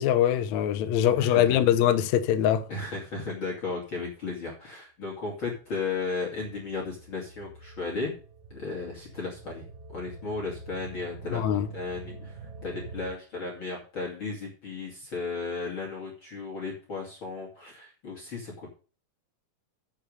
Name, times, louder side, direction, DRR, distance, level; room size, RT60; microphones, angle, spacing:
voice 1, 0.0-2.7 11.3-11.7, left 11 dB, 80° left, 1.6 m, -23 dB
voice 2, 1.1-1.7 2.7-8.1 8.5-18.8, left 3 dB, 35° left, 3.0 m, -35 dB
sound 1, 6.3-13.1, right 3 dB, 85° right, 3.1 m, -46 dB
8.7 x 6.9 x 6.6 m
omnidirectional pair, 4.2 m